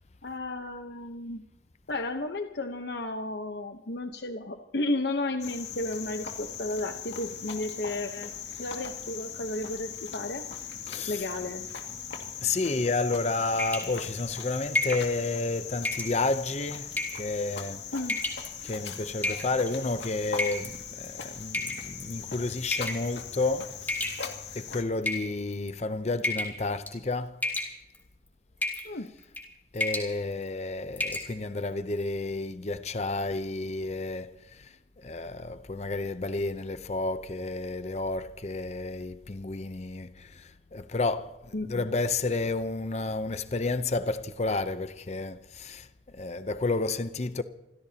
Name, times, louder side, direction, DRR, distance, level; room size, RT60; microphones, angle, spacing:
voice 1, 0.2-1.4 1.9-8.3 8.6-10.4 11.1-11.7 17.9-18.2 28.8-29.1 41.5-41.9, left 2 dB, 70° left, 1.0 m, -33 dB
Cricket, 5.4-24.8, left 7 dB, 85° left, 2.2 m, -40 dB
voice 2, 10.9-11.2 12.4-16.9 17.2-17.8 18.6-24.2 24.6-27.4 29.7-34.3 35.0-40.4 40.7-41.4 41.6-45.9 46.1-47.4, left 3 dB, 40° left, 0.7 m, -31 dB
sound 1, 13.6-14.0 14.7-15.1 15.8-16.1 16.9-17.3 18.0-18.5 19.2-19.7 20.4-20.7 21.5-22.1 22.7-23.1 23.9-24.5 25.0-25.7 26.2-26.6 26.9-27.1 27.4-28.0 28.6-28.9 29.2-29.5 29.8-30.1 30.5-30.6 31.0-31.3, left 2 dB, 10° left, 3.4 m, -31 dB
28.5 x 16.0 x 2.9 m
head